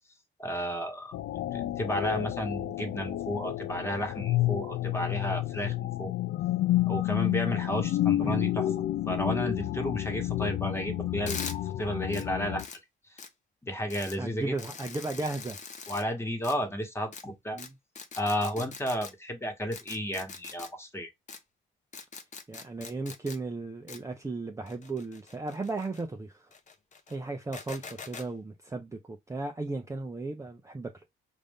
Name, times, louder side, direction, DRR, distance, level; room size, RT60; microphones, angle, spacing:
voice 1, 0.4-1.2 1.5-6.1 6.9-12.6 13.6-14.6 15.9-17.6 18.2-21.1, equal, 10° left, 1.3 m, -33 dB
sound 1, 1.1-12.7, left 15 dB, 70° left, 0.4 m, -30 dB
sound 2, 11.3-11.5 12.1-12.2 12.6-12.8 13.2-13.3 13.9-14.2 14.6-16.0 16.4-16.5 17.1-17.2 17.6-17.7 17.9-19.1 19.7-20.7 21.3-21.4 21.9-23.4 23.9-24.0 24.7-26.0 26.5-27.1 27.5-28.3, left 5 dB, 35° left, 0.7 m, -42 dB
voice 2, 14.2-15.6 17.5-17.7 22.5-26.5 27.1-30.9, right 3 dB, 15° right, 0.6 m, -35 dB
5.1 x 2.6 x 3.6 m
cardioid pair, 90°, 20 cm